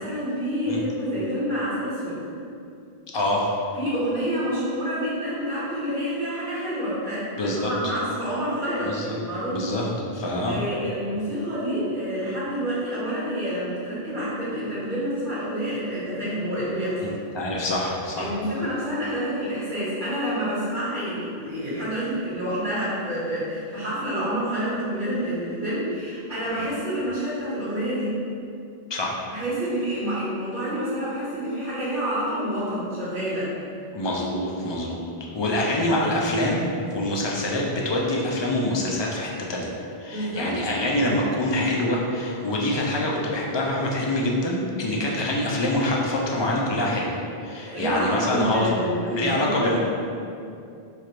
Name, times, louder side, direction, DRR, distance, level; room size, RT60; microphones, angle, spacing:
voice 1, 0.0-2.2 3.7-9.8 10.5-17.2 18.2-28.2 29.3-33.5 35.6-35.8 40.1-40.5 47.6-49.8, equal, 50° right, -10 dB, 1.5 m, -28 dB
voice 2, 3.1-3.5 7.4-7.7 8.8-9.2 9.5-10.6 17.0-18.4 28.9-29.2 33.9-35.1 35.3-39.7 40.0-48.7 49.1-49.8, left 1 dB, 50° left, -2 dB, 0.3 m, -25 dB
3.2 x 2.4 x 4.3 m, 2.5 s
omnidirectional pair, 1.0 m